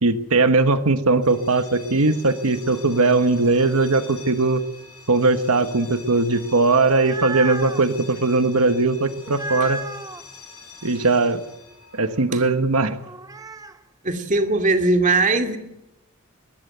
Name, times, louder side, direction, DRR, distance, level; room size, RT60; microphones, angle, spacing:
voice 1, 0.0-4.6 5.1-9.8 10.8-11.4 11.9-13.0, right 3 dB, 85° right, 9 dB, 1.3 m, -19 dB
sound 1, 1.1-12.8, left 4 dB, 85° left, 7.8 m, -45 dB
sound 2, 6.7-7.8 9.3-10.2 13.0-13.8, right 2 dB, 15° right, 1.0 m, -32 dB
voice 2, 14.0-15.6, right 3 dB, 35° right, 6 dB, 2.3 m, -20 dB
22.5 x 18.5 x 7.9 m, 0.94 s
head